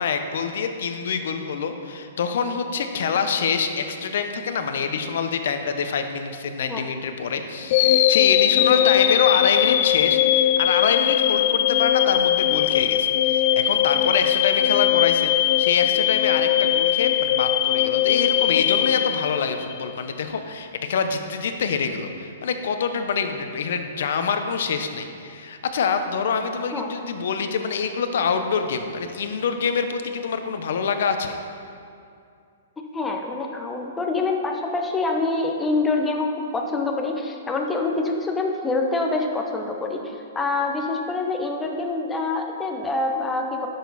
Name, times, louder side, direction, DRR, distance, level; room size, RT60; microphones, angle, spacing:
voice 1, 0.0-31.4, left 6 dB, 65° left, 7 dB, 0.8 m, -26 dB
sound 1, 7.7-19.8, left 12 dB, 45° left, 0.3 m, -20 dB
voice 2, 32.9-43.7, left 3 dB, 10° left, 2 dB, 0.9 m, -26 dB
10.5 x 6.7 x 4.1 m, 2.4 s
hypercardioid pair, 150°, 0 cm